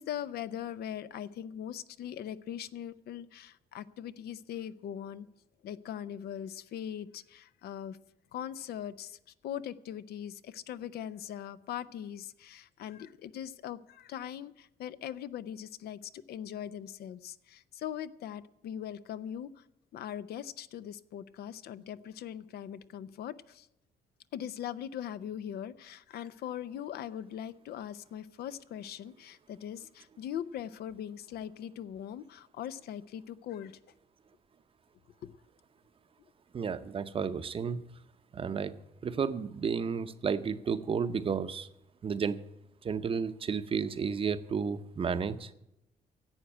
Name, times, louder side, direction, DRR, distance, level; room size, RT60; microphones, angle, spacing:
voice 1, 0.0-5.3 5.6-8.0 8.3-9.2 9.4-19.6 19.9-23.7 24.3-33.8 35.2-35.3, left 10 dB, 80° left, 14 dB, 0.6 m, -41 dB
voice 2, 36.5-37.8 38.3-38.7 39.0-41.7 42.0-42.4 42.8-45.5, right 6 dB, 35° right, 12 dB, 0.7 m, -32 dB
11.5 x 8.1 x 9.9 m, 0.87 s
cardioid pair, 140°, 16 cm